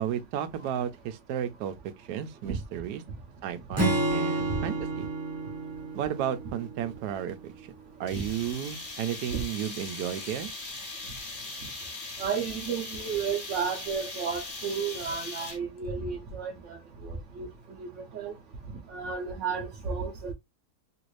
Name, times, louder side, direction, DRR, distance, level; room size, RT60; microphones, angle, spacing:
voice 1, 0.0-3.0 3.4-5.1 5.9-7.5 8.0-10.5, right 9 dB, 85° right, 1.1 m, -33 dB
Acoustic guitar / Strum, 3.8-7.2, right 2 dB, 20° right, 0.4 m, -30 dB
sound 1, 8.1-15.8, left 3 dB, 40° left, 0.8 m, -40 dB
voice 2, 12.2-16.8 17.0-17.5 17.8-17.9 18.1-18.3 18.9-20.3, right 6 dB, 60° right, 0.9 m, -32 dB
3.1 x 2.5 x 3.1 m
omnidirectional pair, 1.7 m